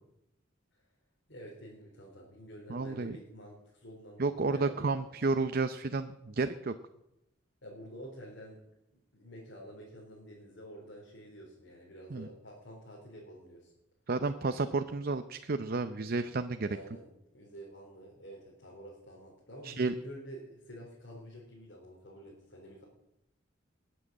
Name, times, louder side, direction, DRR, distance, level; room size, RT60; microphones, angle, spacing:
voice 1, 1.3-4.8 7.6-8.6 9.1-13.7 16.6-22.8, equal, 65° left, -4 dB, 4.0 m, -49 dB
voice 2, 2.7-3.1 4.2-6.7 12.1-12.3 14.1-16.7 19.6-19.9, right 3 dB, 50° right, 10 dB, 0.6 m, -31 dB
20.5 x 7.7 x 7.5 m, 0.88 s
head